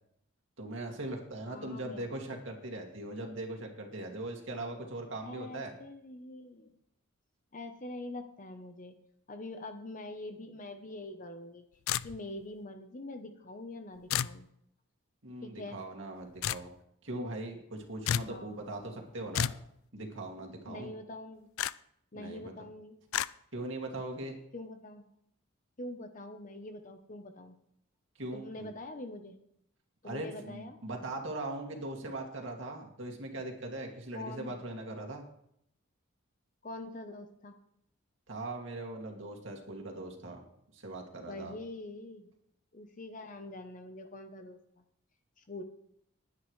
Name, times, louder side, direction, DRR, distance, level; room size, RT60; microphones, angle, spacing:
voice 1, 0.6-5.7 15.2-16.7 17.0-19.5 19.9-20.9 22.1-22.5 23.5-24.4 28.2-28.7 30.0-35.2 38.3-40.4 40.7-41.5, right 2 dB, 60° right, 1 dB, 2.4 m, -40 dB
voice 2, 1.5-2.1 5.2-6.8 7.5-8.9 9.3-11.6 12.0-14.5 15.4-15.8 18.3-18.6 20.6-21.5 22.1-23.0 24.5-25.0 25.8-27.6 28.3-29.4 30.0-30.8 34.1-34.5 36.6-37.6 41.2-42.3 42.7-44.6 45.5-45.6, left 2 dB, 40° left, 7 dB, 0.8 m, -44 dB
sound 1, 11.9-12.4 14.1-14.4 16.4-16.7 18.1-18.3 19.3-19.7 21.6-21.7 23.1-23.3, left 9 dB, 75° left, 0.4 m, -31 dB
19.5 x 9.5 x 3.2 m, 0.73 s
head